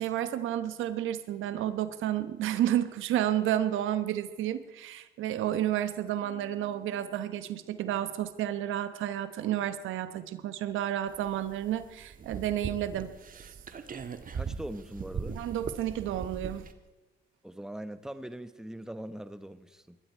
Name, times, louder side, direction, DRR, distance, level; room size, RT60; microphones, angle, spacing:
voice 1, 0.0-13.1 15.3-16.7, right 11 dB, 85° right, 12 dB, 1.1 m, -31 dB
Piano, 6.2-9.6, right 6 dB, 25° right, 3.1 m, -60 dB
sound 1, 11.1-16.7, right 5 dB, 45° right, 1.5 m, -40 dB
voice 2, 14.3-15.4 17.4-20.0, right 1 dB, 5° right, 12 dB, 1.0 m, -41 dB
21.0 x 13.5 x 4.6 m, 1.2 s
cardioid pair, 90°, 20 cm